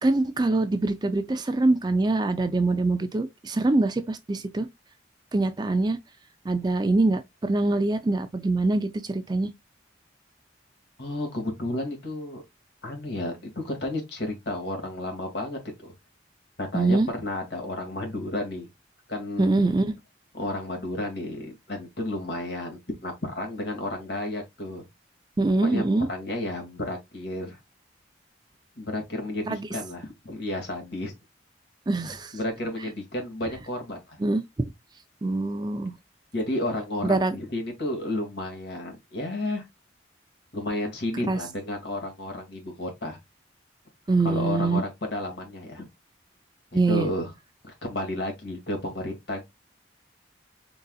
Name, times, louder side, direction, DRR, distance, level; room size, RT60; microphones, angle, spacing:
voice 1, 0.0-4.7 5.3-6.0 6.5-9.5 16.7-17.1 19.4-20.0 25.4-26.1 29.5-29.7 31.9-32.4 34.2-34.7 35.2-35.9 37.0-37.4 41.3-41.4 44.1-44.8 46.7-47.1, right 2 dB, 20° right, 0.4 m, -24 dB
voice 2, 11.0-12.4 12.8-15.9 16.6-18.7 19.1-19.5 20.3-24.8 25.6-25.8 26.1-27.6 28.8-31.1 32.3-34.2 36.3-39.6 40.5-43.2 44.2-45.9 46.7-47.3 47.6-49.5, left 1 dB, 65° left, 1.9 m, -32 dB
4.0 x 3.8 x 2.3 m
head